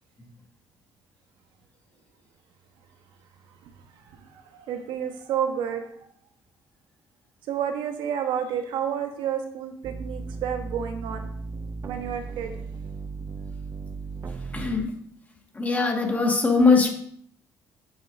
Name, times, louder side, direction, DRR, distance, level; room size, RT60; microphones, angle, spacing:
voice 1, 3.6-5.9 7.5-11.3 11.8-12.6, right 8 dB, 85° right, 6 dB, 1.1 m, -30 dB
sound 1, 9.8-14.9, right 4 dB, 35° right, 0.4 m, -36 dB
voice 2, 14.3-14.9 15.5-16.9, left 4 dB, 20° left, 1 dB, 1.8 m, -21 dB
8.1 x 7.7 x 2.6 m, 0.64 s
cardioid pair, 110°, 8 cm